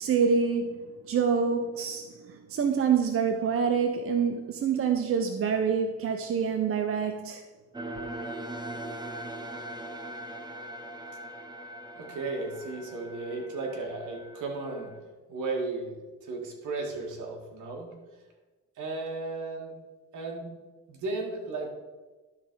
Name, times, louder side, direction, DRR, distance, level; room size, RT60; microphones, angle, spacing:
voice 1, 0.0-7.4, right 6 dB, 45° right, 0.7 m, -26 dB
sound 1, 7.7-15.0, right 1 dB, 15° right, 1.1 m, -41 dB
voice 2, 12.0-14.9 15.3-17.9 18.8-19.7 20.1-20.5 20.9-21.7, right 3 dB, 80° right, 2.1 m, -35 dB
12.0 x 4.1 x 4.7 m
cardioid pair, 90°, 30 cm